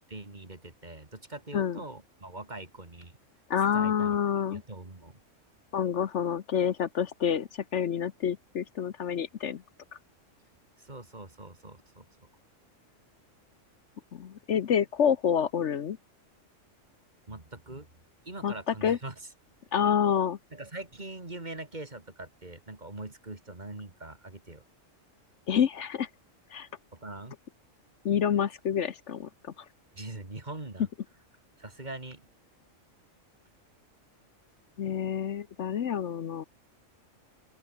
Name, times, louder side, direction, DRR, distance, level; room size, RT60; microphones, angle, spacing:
voice 1, 0.0-3.2 3.7-4.1 4.5-5.2 10.8-12.0 17.3-17.9 18.2-19.1 20.5-24.6 26.9-27.3 29.9-30.9 31.6-32.3, right 2 dB, 35° right, 3.0 m, -42 dB
voice 2, 3.5-4.6 5.7-9.6 14.1-16.0 18.4-19.0 19.7-20.4 25.5-26.1 26.5-26.7 28.0-29.5 34.8-36.4, left 8 dB, 65° left, 1.2 m, -28 dB
open air
omnidirectional pair, 1.3 m